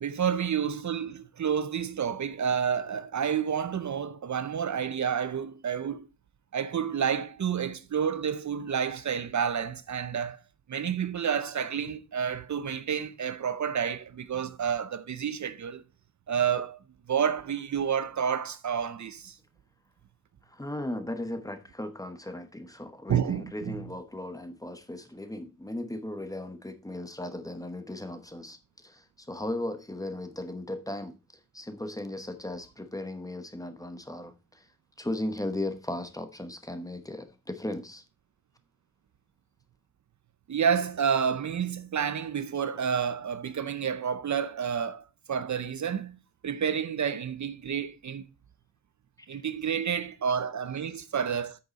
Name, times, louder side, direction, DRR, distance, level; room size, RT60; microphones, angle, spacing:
voice 1, 0.0-6.1 6.5-10.4 10.7-15.8 16.3-16.8 17.1-19.3 23.1-23.8 40.5-46.2 46.4-48.2 49.3-51.6, right 7 dB, 55° right, 0.6 m, -29 dB
voice 2, 20.5-31.1 31.5-34.6 35.0-38.0 49.3-49.4, left 1 dB, 10° left, 1.0 m, -37 dB
8.5 x 6.6 x 4.1 m
wide cardioid pair, 165°, 34 cm